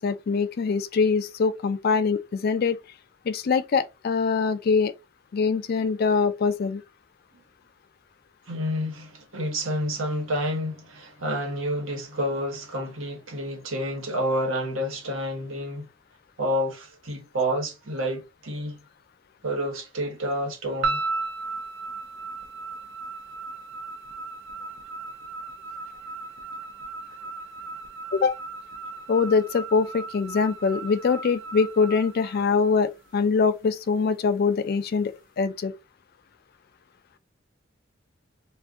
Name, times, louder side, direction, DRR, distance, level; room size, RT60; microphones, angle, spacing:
voice 1, 0.0-2.8 3.3-4.9 5.3-6.8 28.1-28.4 29.1-35.7, left 5 dB, 50° left, 0.3 m, -23 dB
voice 2, 8.5-15.9 16.4-18.8 19.4-21.0, equal, 85° right, 1.1 m, -29 dB
sound 1, 20.8-33.1, right 3 dB, 70° right, 0.6 m, -36 dB
2.5 x 2.4 x 3.4 m
head